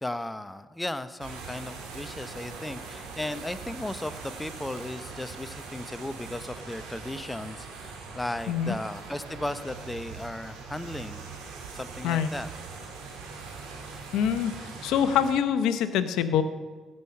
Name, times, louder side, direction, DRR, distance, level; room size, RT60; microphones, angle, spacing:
voice 1, 0.0-11.3 11.7-12.5, left 1 dB, 15° left, 13 dB, 0.8 m, -36 dB
sound 1, 1.2-15.3, right 4 dB, 85° right, 2.3 m, -42 dB
voice 2, 14.1-16.4, left 8 dB, 75° left, 11 dB, 0.7 m, -25 dB
15.5 x 6.5 x 6.8 m, 1.5 s
hypercardioid pair, 50°, 0 cm